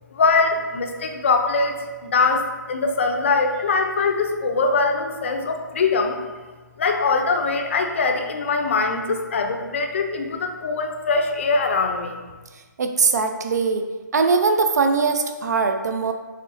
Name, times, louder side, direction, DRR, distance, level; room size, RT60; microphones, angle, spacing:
voice 1, 0.1-1.8 2.0-6.2 6.8-12.2, left 4 dB, 40° left, 4 dB, 0.5 m, -22 dB
voice 2, 12.8-13.9 14.1-16.1, right 4 dB, 60° right, 6 dB, 0.5 m, -21 dB
6.6 x 3.2 x 2.5 m, 1.3 s
hypercardioid pair, 165°, 10 cm